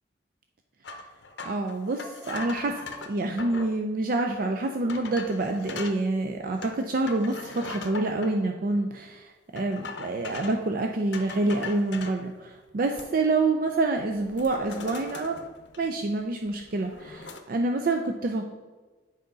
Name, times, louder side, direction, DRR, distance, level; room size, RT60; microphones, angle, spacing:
sound 1, 0.8-3.8 4.3-4.4 4.9-6.0 6.6-8.3 9.6-10.7 11.1-12.2 12.7-13.4 13.7-13.9 14.2-16.1 16.5-17.4, left 4 dB, 65° left, 0.7 m, -40 dB
voice 1, 1.4-9.2 9.5-15.3 15.8-18.5, right 2 dB, 50° right, 4 dB, 0.4 m, -27 dB
7.9 x 5.0 x 3.9 m, 1.3 s
head